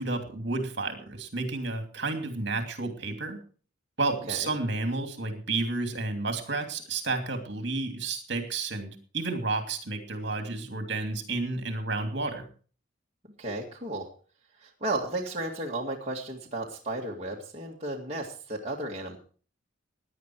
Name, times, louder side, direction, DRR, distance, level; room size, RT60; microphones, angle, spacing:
voice 1, 0.0-3.4 4.0-12.5, right 3 dB, 55° right, 5 dB, 2.8 m, -31 dB
voice 2, 13.4-14.1 14.6-19.2, right 2 dB, 30° right, -2 dB, 2.0 m, -34 dB
17.0 x 10.5 x 4.6 m, 0.41 s
head